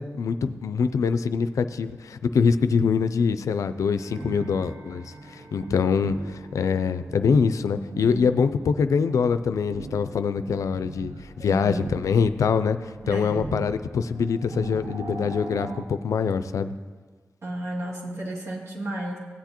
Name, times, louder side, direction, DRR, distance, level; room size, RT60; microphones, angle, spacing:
voice 1, 0.0-12.8 13.1-16.7, left 6 dB, 80° left, 11 dB, 0.4 m, -24 dB
sound 1, 4.0-15.8, right 2 dB, 90° right, 0.8 m, -40 dB
voice 2, 11.4-11.8 13.0-13.3 17.4-19.2, right 1 dB, 60° right, -3 dB, 2.5 m, -32 dB
16.5 x 8.1 x 3.0 m, 1.5 s
cardioid pair, 45°, 5 cm